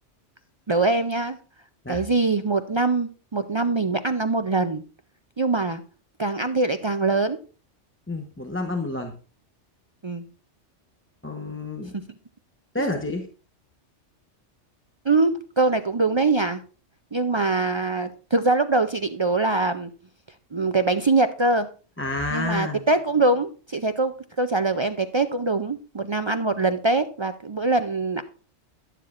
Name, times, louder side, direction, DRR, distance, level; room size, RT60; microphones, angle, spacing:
voice 1, 0.7-1.4 1.9-4.8 5.4-5.8 6.2-7.4 10.0-10.3 12.8-12.9 15.1-16.6 17.1-19.9 20.5-21.7 22.3-28.2, right 3 dB, 45° right, 9 dB, 0.3 m, -23 dB
voice 2, 8.1-9.1 11.2-11.9 12.7-13.3 22.0-22.9, left 2 dB, 10° left, 3 dB, 0.9 m, -29 dB
12.0 x 10.5 x 2.5 m, 0.37 s
omnidirectional pair, 1.2 m